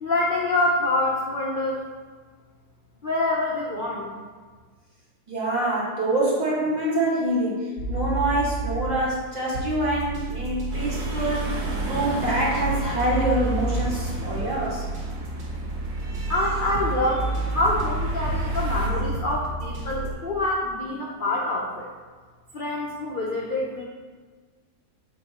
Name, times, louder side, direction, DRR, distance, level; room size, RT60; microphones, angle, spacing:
voice 1, 0.0-1.8 3.0-4.1 16.3-21.9 22.5-23.8, left 2 dB, 55° left, -4 dB, 0.5 m, -26 dB
voice 2, 5.3-14.9, right 1 dB, 25° right, -7 dB, 1.5 m, -26 dB
sound 1, 7.8-9.1 9.5-20.1, right 2 dB, 85° right, 2.0 m, -30 dB
sound 2, 10.7-18.9, right 1 dB, 70° right, 1.6 m, -36 dB
7.7 x 3.3 x 4.2 m, 1.5 s
omnidirectional pair, 1.9 m